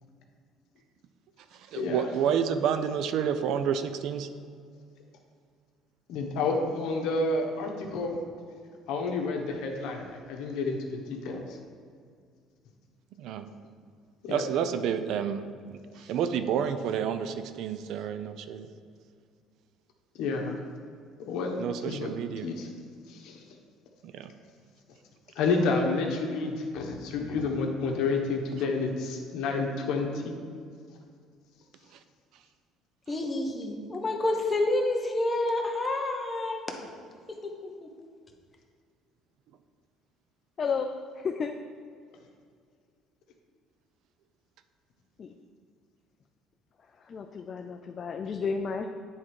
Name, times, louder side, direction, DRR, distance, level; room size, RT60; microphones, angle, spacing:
voice 1, 1.5-4.3 13.2-13.4 14.3-15.5 15.9-18.7 21.6-22.5 24.0-24.3 31.9-32.0, right 8 dB, 65° right, 10 dB, 0.4 m, -29 dB
voice 2, 6.1-8.2 8.9-11.6 14.2-14.4 20.1-20.6 21.2-22.1 22.4-22.7 23.1-23.4 25.4-30.4, left 3 dB, 75° left, 2 dB, 1.1 m, -30 dB
voice 3, 33.1-36.6 37.3-37.9, left 2 dB, 20° left, 2 dB, 0.9 m, -29 dB
voice 4, 40.6-40.9 41.2-41.5 45.2-45.3 47.0-48.9, left 5 dB, 35° left, 5 dB, 0.4 m, -32 dB
9.8 x 3.6 x 4.7 m, 2.2 s
cardioid pair, 135°, 0 cm